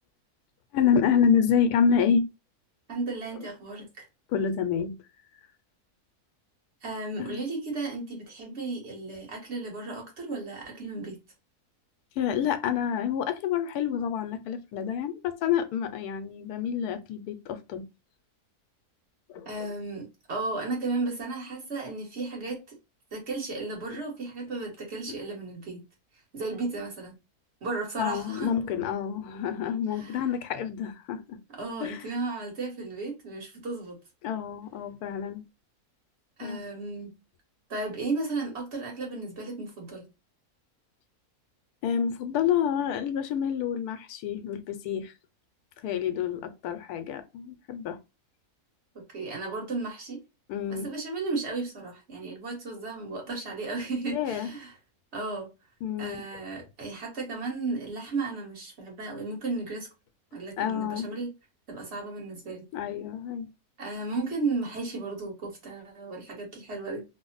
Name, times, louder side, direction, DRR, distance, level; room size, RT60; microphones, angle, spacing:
voice 1, 0.7-2.2 4.3-4.9 7.2-7.4 12.2-17.8 19.3-19.5 23.9-24.0 25.1-25.2 28.0-31.4 31.8-32.1 34.2-35.4 36.4-36.6 41.8-45.1 45.8-48.0 50.5-50.9 54.1-54.5 55.8-56.4 60.6-61.1 62.7-63.5, left 7 dB, 80° left, 1.1 m, -28 dB
voice 2, 2.9-4.0 6.8-11.2 19.4-22.7 23.1-25.8 26.3-27.1 27.6-28.5 29.9-30.2 31.5-34.0 36.4-37.1 37.7-40.1 49.1-50.2 50.7-54.7 55.1-55.5 56.0-59.9 60.3-61.3 61.7-62.7 63.8-67.0, right 3 dB, 45° right, 1.5 m, -34 dB
3.1 x 2.1 x 3.8 m
omnidirectional pair, 1.6 m